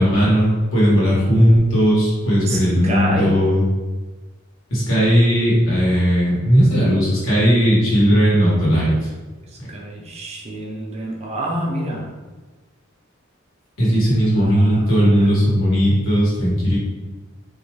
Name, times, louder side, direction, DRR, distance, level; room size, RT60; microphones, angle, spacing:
voice 1, 0.0-3.6 4.7-8.9 13.8-16.8, equal, 75° left, -7 dB, 1.2 m, -16 dB
voice 2, 2.4-3.4 9.4-12.1 14.3-15.3, right 1 dB, 30° right, -1 dB, 0.4 m, -28 dB
2.6 x 2.2 x 3.0 m, 1.3 s
head